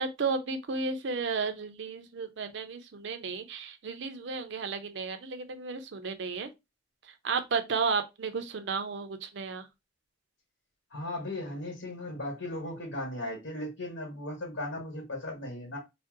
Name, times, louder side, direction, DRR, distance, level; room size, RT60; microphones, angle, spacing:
voice 1, 0.0-6.5 7.0-9.7, right 4 dB, 60° right, 0.5 m, -33 dB
voice 2, 10.9-15.8, left 1 dB, 75° left, 1.2 m, -37 dB
2.6 x 2.0 x 3.7 m
head